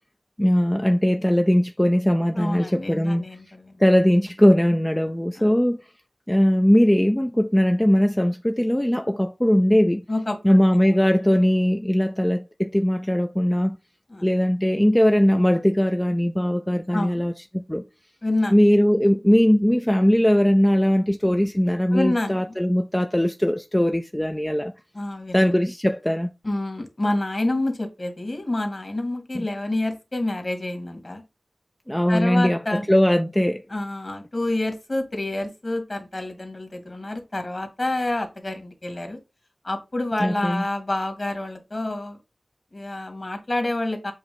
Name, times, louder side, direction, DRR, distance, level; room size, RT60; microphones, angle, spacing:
voice 1, 0.4-3.3 3.8-5.8 6.3-10.0 10.4-13.8 14.2-17.8 18.5-24.7 25.3-26.3 29.3-29.5 31.9-33.7 40.2-40.6, equal, 10° left, 0.5 m, -20 dB
voice 2, 2.4-3.7 5.4-5.5 10.1-10.6 14.1-14.3 16.9-17.3 18.2-18.6 21.9-22.5 24.9-25.5 26.4-31.2 32.1-32.8 33.7-39.2 39.6-42.2 42.7-44.1, left 2 dB, 40° left, 2.2 m, -28 dB
7.8 x 3.0 x 5.3 m
wide cardioid pair, 60°, 0 cm